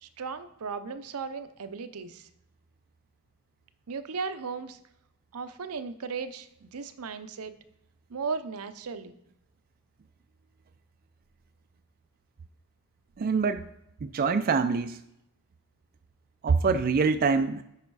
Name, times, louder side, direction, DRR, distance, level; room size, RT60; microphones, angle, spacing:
voice 1, 0.0-2.3 3.9-4.8 5.3-7.5 8.1-9.1, right 5 dB, 75° right, 10 dB, 0.6 m, -36 dB
voice 2, 13.2-13.7 14.0-15.0 16.4-17.6, right 5 dB, 40° right, 8 dB, 0.3 m, -25 dB
9.7 x 4.9 x 4.7 m, 0.81 s
head